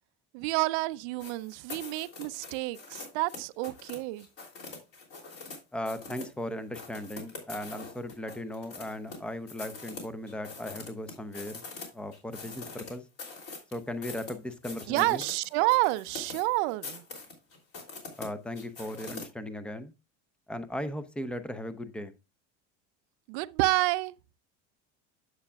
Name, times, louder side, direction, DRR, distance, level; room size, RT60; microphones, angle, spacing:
voice 1, 0.3-4.3 14.9-17.0 23.3-24.1, right 21 dB, 70° right, 0.6 m, -29 dB
sound 1, 1.2-5.6 5.9-6.3 6.7-9.2 9.5-11.9 12.1-19.3, left 4 dB, 40° left, 3.0 m, -43 dB
voice 2, 5.7-11.6 11.9-13.0 13.7-15.2 18.2-19.9 20.5-22.1, left 1 dB, 5° left, 0.6 m, -37 dB
9.6 x 7.3 x 2.3 m
supercardioid pair, 125°, 35 cm